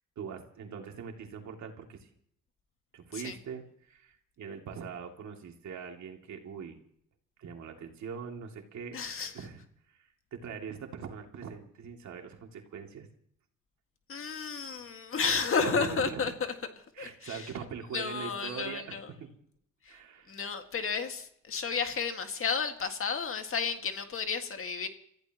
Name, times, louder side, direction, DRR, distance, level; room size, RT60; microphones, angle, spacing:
voice 1, 0.2-2.1 2.9-6.8 7.4-9.0 9.3-9.6 9.9-13.1 14.5-14.9 15.6-16.2 16.9-19.3 19.9-20.3, right 6 dB, 65° right, 2 dB, 2.6 m, -42 dB
voice 2, 8.9-9.3 14.1-16.5 17.0-17.5 17.9-19.1 19.8-20.0 20.3-24.9, left 5 dB, 45° left, 6 dB, 1.9 m, -32 dB
28.5 x 15.0 x 3.0 m, 0.67 s
cardioid pair, 90°, 30 cm